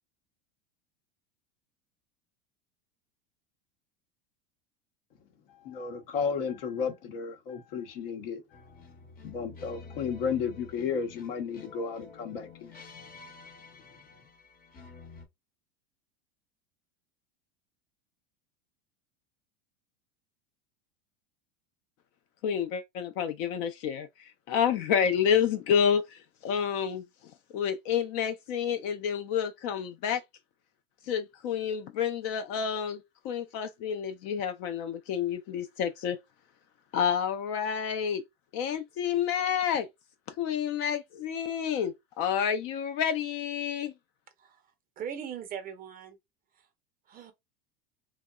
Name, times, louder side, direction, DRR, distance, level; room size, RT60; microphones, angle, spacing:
voice 1, 5.5-8.6 9.2-12.8, left 6 dB, 70° left, 0.8 m, -33 dB
sound 1, 8.5-15.3, left 4 dB, 30° left, 0.7 m, -49 dB
voice 2, 22.4-27.0 27.5-30.2 31.1-36.2 36.9-38.2 38.5-39.9 40.4-43.9, left 8 dB, 50° left, 0.4 m, -29 dB
voice 3, 44.4-46.2 46.5-46.7 47.1-47.3, right 8 dB, 30° right, 0.5 m, -40 dB
2.8 x 2.0 x 2.2 m
hypercardioid pair, 105°, 30 cm